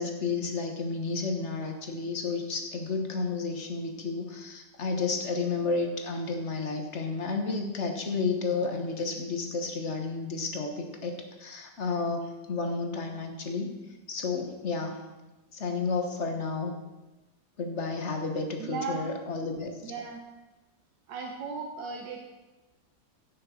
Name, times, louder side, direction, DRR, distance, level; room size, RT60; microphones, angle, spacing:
voice 1, 0.0-13.7 14.1-15.0 15.5-16.7 17.6-19.9, left 4 dB, 45° left, 4 dB, 1.4 m, -31 dB
voice 2, 18.6-19.1 19.8-20.2 21.1-22.2, right 4 dB, 85° right, 2 dB, 1.6 m, -36 dB
15.5 x 6.6 x 4.3 m, 1.1 s
omnidirectional pair, 1.9 m